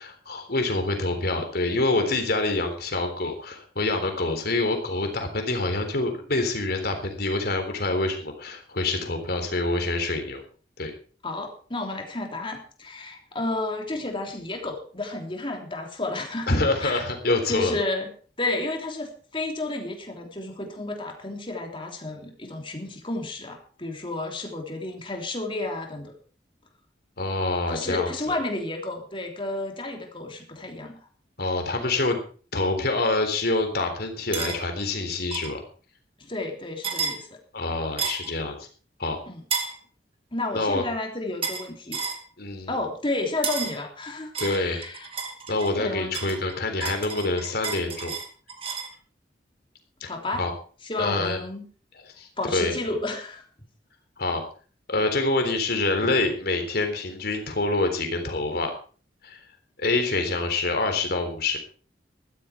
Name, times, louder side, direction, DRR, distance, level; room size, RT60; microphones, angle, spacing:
voice 1, 0.0-10.4 10.8-10.9 16.5-17.8 27.2-28.4 31.4-32.2 32.5-35.6 37.5-38.6 39.0-39.2 40.5-40.8 42.4-42.7 44.4-44.9 45.5-48.1 50.0-50.1 50.4-50.5 51.0-51.4 52.2-52.7 54.2-54.4 54.9-58.7 59.2-59.4 59.8-61.6, left 2 dB, 60° left, 5 dB, 3.7 m, -26 dB
voice 2, 11.2-17.0 17.5-18.1 18.4-26.1 27.7-31.0 36.2-37.4 39.3-39.4 40.3-42.0 42.7-45.1 45.8-46.3 50.1-50.4 50.8-51.7 52.4-53.4, left 2 dB, 30° left, 2 dB, 3.2 m, -31 dB
sound 1, 34.3-34.6 35.3-35.5 36.8-37.2 38.0-38.3 39.5-39.8 41.4-41.7 41.9-42.2 43.4-43.8 44.3-45.7 46.1-48.9, right 5 dB, 35° right, 2.4 m, -31 dB
14.5 x 12.5 x 4.5 m, 0.41 s
head